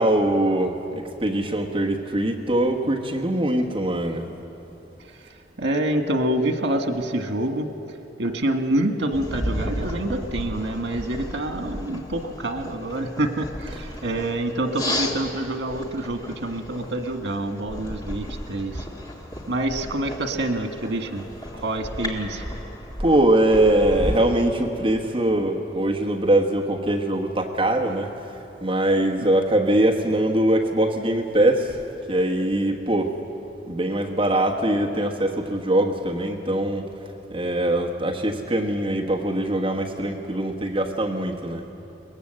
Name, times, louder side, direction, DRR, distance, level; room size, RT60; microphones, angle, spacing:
voice 1, 0.0-4.2 23.0-28.1 28.6-31.8 32.1-33.1 33.7-36.9 37.3-41.6, right 1 dB, 30° right, 1 dB, 1.3 m, -22 dB
voice 2, 5.6-7.7 8.2-18.8 19.5-21.2 21.6-22.5 29.2-29.3, right 1 dB, 90° right, 6 dB, 1.6 m, -26 dB
sound 1, 9.1-24.3, left 1 dB, 20° left, 1.7 m, -34 dB
22.0 x 19.5 x 7.8 m, 2.9 s
head